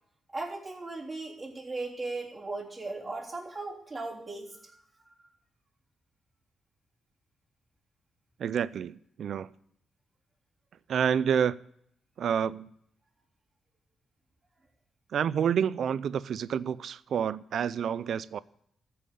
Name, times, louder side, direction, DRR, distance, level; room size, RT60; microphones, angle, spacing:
voice 1, 0.3-4.8, right 3 dB, 15° right, 3.5 m, -37 dB
voice 2, 8.4-9.5 10.9-11.6 12.2-12.7 15.1-18.4, right 8 dB, 65° right, 0.4 m, -28 dB
14.0 x 5.6 x 8.4 m
cardioid pair, 115°, 0 cm